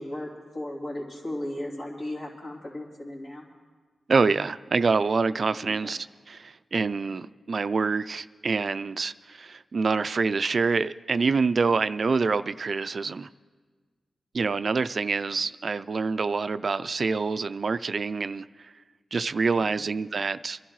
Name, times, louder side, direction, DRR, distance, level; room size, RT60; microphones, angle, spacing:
voice 1, 0.0-3.4 5.6-5.9 19.5-19.9, left 1 dB, 60° left, -5 dB, 3.2 m, -36 dB
voice 2, 4.1-13.3 14.3-18.7 19.1-20.6, right 4 dB, 60° right, 14 dB, 0.3 m, -26 dB
25.0 x 11.5 x 3.1 m, 1.5 s
cardioid pair, 50°, 0 cm